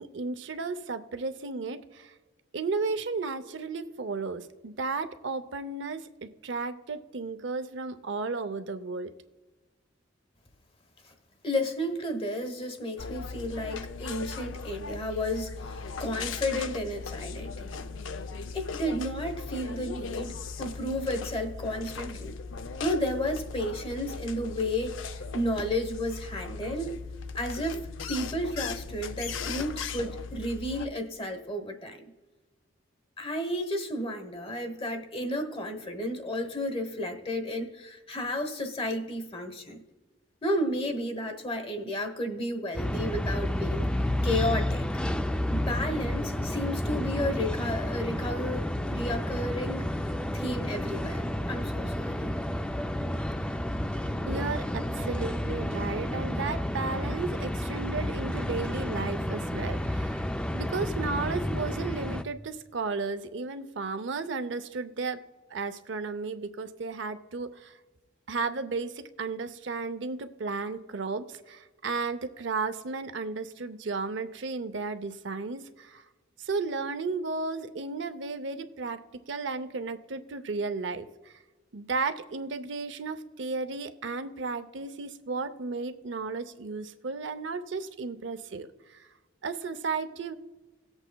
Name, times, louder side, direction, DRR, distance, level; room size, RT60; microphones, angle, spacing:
voice 1, 0.0-2.1 2.5-9.1 54.3-60.2 60.5-67.7 68.3-76.0 76.4-81.3 81.7-89.1 89.4-90.3, right 4 dB, 65° right, 0.6 m, -34 dB
voice 2, 11.4-17.9 18.5-22.4 22.8-26.9 27.3-27.8 28.1-32.0 33.2-39.8 40.4-43.9 44.2-44.8 45.5-49.8 50.3-52.3, left 1 dB, 25° left, 1.0 m, -32 dB
sound 1, 13.0-30.9, left 5 dB, 75° left, 0.6 m, -38 dB
sound 2, 42.8-62.2, left 1 dB, 5° left, 0.3 m, -31 dB
18.0 x 8.0 x 2.3 m
head